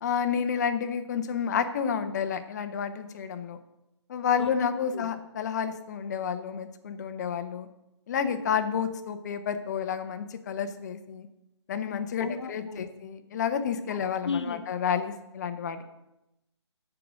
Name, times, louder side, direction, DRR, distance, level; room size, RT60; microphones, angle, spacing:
voice 1, 0.0-3.6 4.1-7.7 8.1-11.3 11.7-15.8, left 7 dB, 35° left, 9 dB, 0.9 m, -30 dB
voice 2, 12.2-12.9 14.2-14.6, left 4 dB, 70° left, 7 dB, 1.3 m, -33 dB
13.0 x 4.9 x 6.3 m, 0.91 s
figure-of-eight pair, 145°, 15 cm